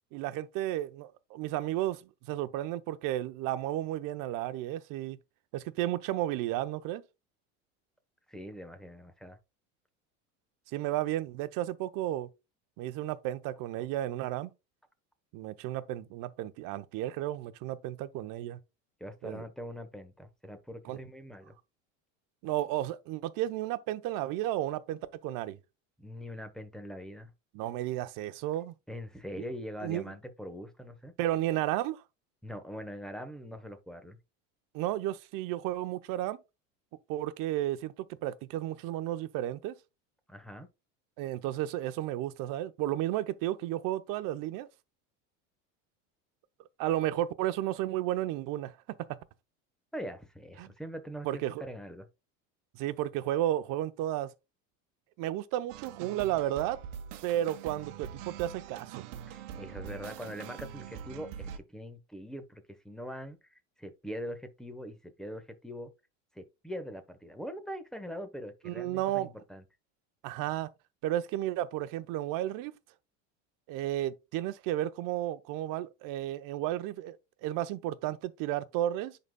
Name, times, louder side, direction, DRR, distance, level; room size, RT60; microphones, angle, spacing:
voice 1, 0.1-5.2 5.5-7.0 10.7-12.3 12.8-14.5 15.3-18.6 19.2-19.4 20.8-21.0 22.4-25.6 27.5-28.7 29.8-30.1 31.2-32.0 34.7-36.4 37.1-37.9 38.2-39.7 41.2-44.7 46.8-48.7 50.6-50.7 51.2-51.7 52.7-54.3 55.2-56.8 57.2-59.0 68.6-69.3 70.2-70.7 71.0-72.8 73.7-79.2, right 13 dB, 60° right, 0.8 m, -33 dB
voice 2, 8.3-9.4 19.0-21.5 26.0-27.3 28.9-31.1 32.4-34.2 40.3-40.7 49.9-52.1 59.3-65.9 66.3-69.6, equal, ahead, 1.0 m, -42 dB
sound 1, 55.7-61.6, right 8 dB, 75° right, 1.1 m, -44 dB
10.5 x 4.0 x 2.2 m
supercardioid pair, 110°, 38 cm